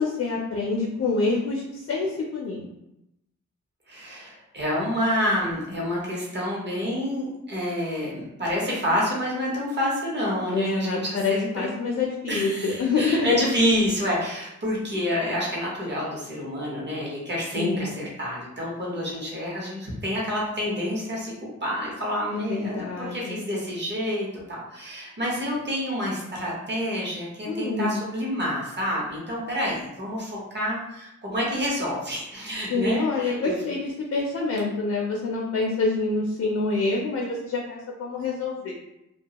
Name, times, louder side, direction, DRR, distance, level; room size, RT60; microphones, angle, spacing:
voice 1, 0.0-2.7 10.5-13.4 17.5-17.9 22.3-23.4 27.4-28.0 32.7-38.7, left 3 dB, 55° left, -1 dB, 0.4 m, -27 dB
voice 2, 3.9-11.0 11.3-11.5 12.3-33.6, equal, 35° right, -5 dB, 0.8 m, -28 dB
2.3 x 2.2 x 2.8 m, 0.87 s
wide cardioid pair, 130°, 30 cm